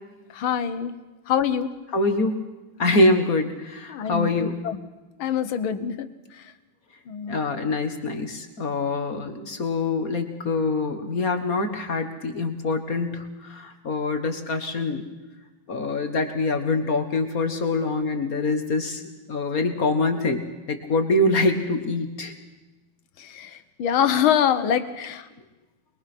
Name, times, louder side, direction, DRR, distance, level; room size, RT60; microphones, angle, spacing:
voice 1, 0.3-0.9 1.3-1.7 3.9-4.8 5.2-6.1 7.1-7.4 23.2-25.3, left 9 dB, 85° left, 11 dB, 1.9 m, -24 dB
voice 2, 1.9-2.4 2.8-4.6 7.3-15.0 15.7-19.0 19.3-22.3, left 2 dB, 45° left, 6 dB, 1.8 m, -24 dB
23.0 x 22.0 x 6.1 m, 1.1 s
omnidirectional pair, 2.2 m